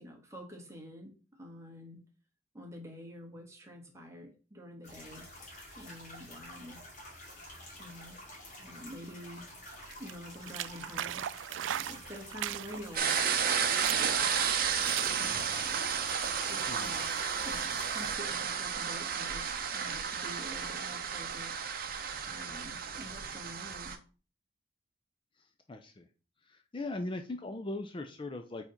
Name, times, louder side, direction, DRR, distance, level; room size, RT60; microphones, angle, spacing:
voice 1, 0.0-2.0 2.5-5.2 5.7-6.8 7.8-8.2 8.6-9.5 10.0-14.3 14.7-17.1 17.4-21.5 22.0-24.0, equal, 15° right, 1 dB, 1.5 m, -48 dB
sound 1, 4.8-18.1, left 1 dB, 40° left, 2.8 m, -49 dB
sound 2, 9.8-15.8, right 11 dB, 75° right, 0.3 m, -39 dB
sound 3, 13.0-24.0, right 7 dB, 50° right, 0.8 m, -32 dB
voice 2, 25.7-26.1 26.5-28.6, left 2 dB, 25° left, 5 dB, 0.5 m, -39 dB
4.9 x 4.2 x 5.1 m, 0.36 s
head